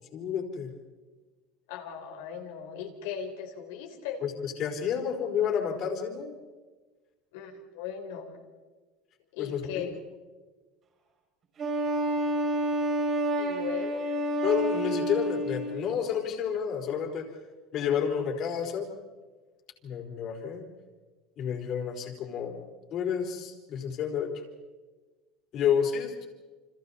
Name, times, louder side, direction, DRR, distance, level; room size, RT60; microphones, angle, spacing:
voice 1, 0.1-0.7 4.2-6.4 9.4-9.9 14.4-17.3 17.7-18.9 19.8-20.7 21.4-22.6 22.9-24.3 25.5-26.3, left 8 dB, 45° left, 2 dB, 4.1 m, -30 dB
voice 2, 1.7-4.2 7.3-8.4 9.3-10.0 13.4-14.1, left 8 dB, 80° left, 3 dB, 4.0 m, -38 dB
Wind instrument woodwind instrument, 11.6-15.9, right 1 dB, 35° right, 6.2 m, -29 dB
30.0 x 25.5 x 4.2 m, 1.3 s
supercardioid pair, 130°, 0 cm